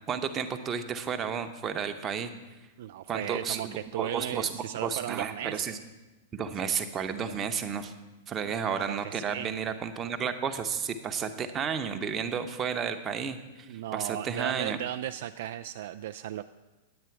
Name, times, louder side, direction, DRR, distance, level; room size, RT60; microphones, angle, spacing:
voice 1, 0.1-2.3 3.1-5.8 6.3-7.9 8.3-14.8, right 7 dB, 25° right, 7 dB, 0.8 m, -32 dB
voice 2, 2.8-5.7 6.6-6.8 7.2-7.3 8.7-9.5 13.7-16.4, right 12 dB, 55° right, 9 dB, 0.3 m, -36 dB
9.6 x 9.1 x 4.7 m, 1.1 s
figure-of-eight pair, 100°, 0 cm